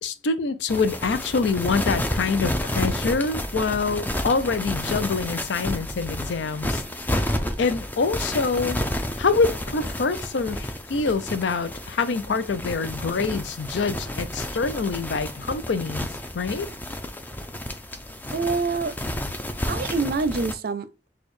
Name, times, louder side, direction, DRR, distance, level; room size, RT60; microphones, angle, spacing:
voice 1, 0.0-6.8 7.6-8.8 9.2-16.1 16.3-16.7, left 4 dB, 90° left, 0.5 m, -25 dB
sound 1, 0.7-20.5, left 1 dB, 10° left, 0.4 m, -31 dB
voice 2, 18.3-18.9 19.7-21.1, right 4 dB, 60° right, 0.5 m, -26 dB
6.2 x 2.3 x 3.2 m
head